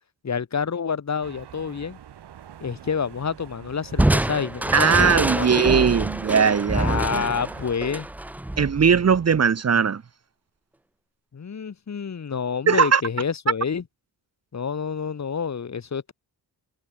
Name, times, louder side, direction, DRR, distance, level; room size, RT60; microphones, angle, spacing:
voice 1, 0.2-2.0 2.6-5.7 6.7-8.1 11.3-13.8 14.5-16.1, left 6 dB, 45° left, 3.4 m, -28 dB
sound 1, 1.2-7.8, right 10 dB, 85° right, 5.1 m, -45 dB
Crushing, 4.0-9.4, right 1 dB, 5° right, 0.3 m, -26 dB
voice 2, 4.7-7.3 8.6-10.0 12.7-13.0, right 6 dB, 40° right, 1.3 m, -19 dB
wide cardioid pair, 140°, 40 cm